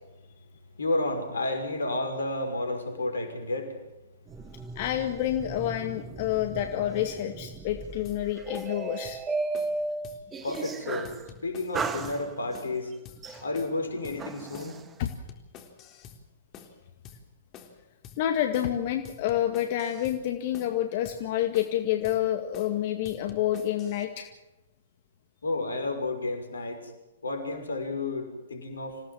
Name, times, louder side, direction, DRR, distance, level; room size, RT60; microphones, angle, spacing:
voice 1, 0.8-3.8 10.4-11.2 11.4-12.9 13.4-14.8 25.4-26.9 27.2-29.0, left 2 dB, 80° left, 6 dB, 6.1 m, -31 dB
sound 1, 4.3-11.2 11.7-12.7 13.2-14.8, right 3 dB, 15° right, 1.7 m, -36 dB
voice 2, 4.8-9.2 13.3-13.4 15.0-15.1 18.2-24.3, left 12 dB, 45° left, 6 dB, 2.0 m, -28 dB
sound 2, 8.0-8.2 8.5-8.8 9.0-9.2 9.5-9.8 10.0-10.2 10.5-10.8 11.0-12.2 12.5-12.8 13.0-13.2 13.5-13.8 14.0-14.2 14.5-14.8 15.0-16.2 16.5-16.8 17.0-17.2 17.5-17.8 18.0-18.2 18.5-18.8 19.0-20.2 20.5-20.8 21.0-21.2 21.5-21.8 22.0-22.2 22.5-22.8 23.0-24.0, left 7 dB, 30° left, 3.9 m, -48 dB
27.5 x 17.5 x 7.6 m, 1.0 s
figure-of-eight pair, 120°, 0 cm